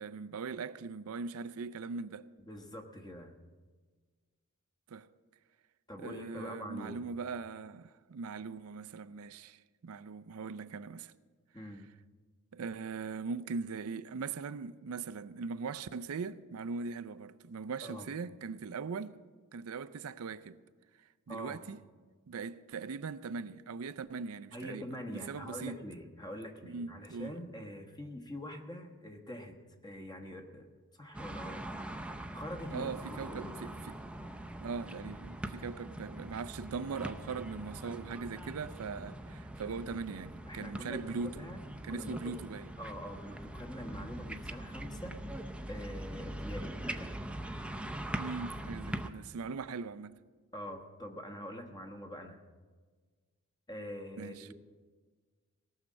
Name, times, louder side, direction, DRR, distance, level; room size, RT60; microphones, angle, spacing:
voice 1, 0.0-2.3 4.9-5.1 6.0-11.1 12.5-19.2 19.5-20.6 21.3-21.8 22.3-24.9 25.1-25.8 26.6-27.3 32.7-34.0 34.6-41.4 41.9-42.7 48.2-50.2 54.2-54.5, right 5 dB, 80° right, 0.5 m, -40 dB
voice 2, 2.5-3.3 5.9-7.0 11.5-11.9 17.8-18.1 21.3-21.6 24.5-29.6 29.8-30.7 31.0-31.6 32.3-33.6 40.5-41.6 41.9-42.4 42.8-45.2 45.7-47.2 50.5-52.4 53.7-54.5, equal, 20° left, 1.2 m, -44 dB
sound 1, 31.1-49.1, right 1 dB, 5° right, 0.6 m, -42 dB
18.0 x 6.5 x 8.4 m
head